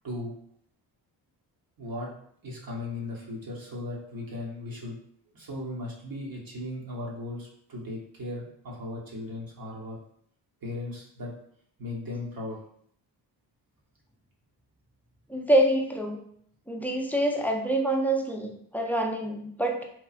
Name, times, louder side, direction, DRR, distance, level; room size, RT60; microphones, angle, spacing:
voice 1, 1.8-2.1 2.4-5.0 5.3-10.0 10.6-11.3 11.8-12.6, left 2 dB, 50° right, -3 dB, 1.0 m, -37 dB
voice 2, 15.3-16.2 16.7-19.8, right 1 dB, 5° left, 1 dB, 0.4 m, -26 dB
3.0 x 2.2 x 2.4 m, 0.65 s
supercardioid pair, 50°, 46 cm